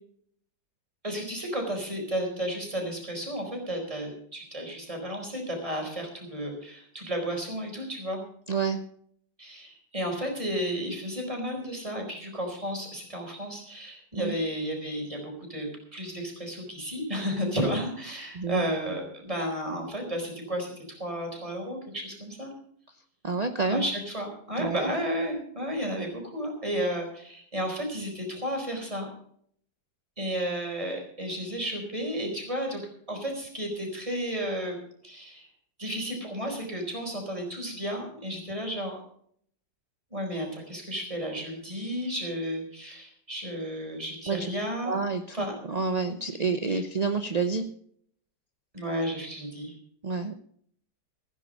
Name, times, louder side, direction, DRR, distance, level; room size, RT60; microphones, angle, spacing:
voice 1, 1.0-8.2 9.4-22.5 23.7-29.1 30.2-32.8 33.1-34.8 35.0-35.5 35.8-39.0 40.1-44.9 45.3-45.5 46.7-46.8 48.7-49.7, equal, 20° right, 2 dB, 4.4 m, -33 dB
voice 2, 8.5-8.8 14.1-14.4 18.3-18.7 23.2-23.8 24.6-24.9 44.3-44.5 44.9-45.4 45.6-47.7 50.0-50.3, right 4 dB, 45° right, 8 dB, 0.5 m, -28 dB
16.0 x 10.0 x 5.2 m, 0.63 s
omnidirectional pair, 1.9 m